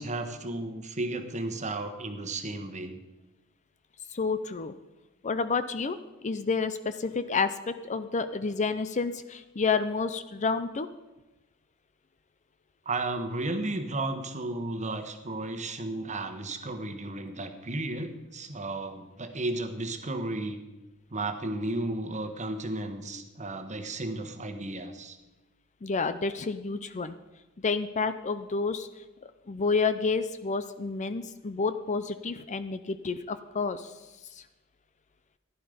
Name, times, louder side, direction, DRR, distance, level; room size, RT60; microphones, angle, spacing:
voice 1, 0.0-3.0 12.8-20.6 21.1-25.2, right 2 dB, 35° right, 7 dB, 1.3 m, -34 dB
voice 2, 4.1-4.7 5.2-10.9 25.8-27.2 27.6-29.0 29.5-33.9 34.3-34.4, left 4 dB, 35° left, 12 dB, 0.6 m, -30 dB
15.0 x 11.0 x 5.1 m, 1.1 s
head